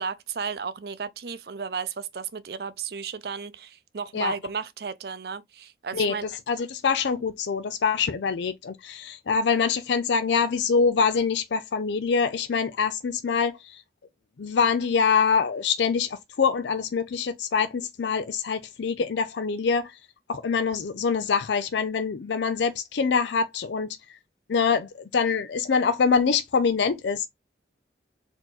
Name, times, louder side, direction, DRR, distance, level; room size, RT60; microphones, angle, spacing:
voice 1, 0.0-6.2, right 6 dB, 60° right, 0.5 m, -34 dB
voice 2, 5.9-13.8 14.4-20.0 20.3-24.0 24.5-27.3, left 5 dB, 80° left, 0.5 m, -25 dB
4.4 x 2.8 x 4.0 m
head